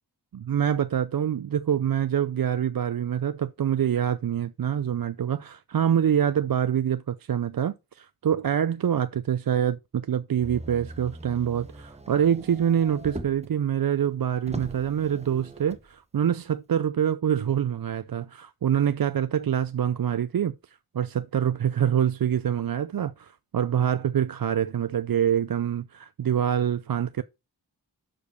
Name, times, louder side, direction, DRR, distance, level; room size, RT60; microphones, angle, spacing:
voice 1, 0.3-20.5 20.9-27.2, right 9 dB, 55° right, 0.5 m, -25 dB
Motor vehicle (road), 10.4-13.6 14.0-14.1 14.4-15.9 16.7-16.8, right 1 dB, 15° right, 1.0 m, -40 dB
6.7 x 5.1 x 5.3 m
wide cardioid pair, 40°, 42 cm